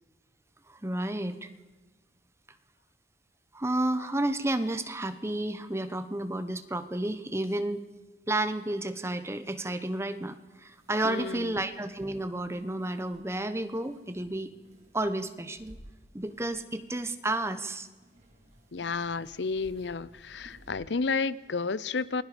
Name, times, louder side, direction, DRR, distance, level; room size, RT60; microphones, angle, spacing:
voice 1, 0.7-1.5 3.5-7.9 8.3-14.5 14.9-15.8 16.1-17.9, right 1 dB, 15° right, 1.1 m, -31 dB
sound 1, 10.5-20.7, equal, 40° right, 5.1 m, -57 dB
voice 2, 11.0-11.5 18.7-22.2, left 4 dB, 80° left, 0.7 m, -31 dB
29.0 x 21.5 x 5.1 m
head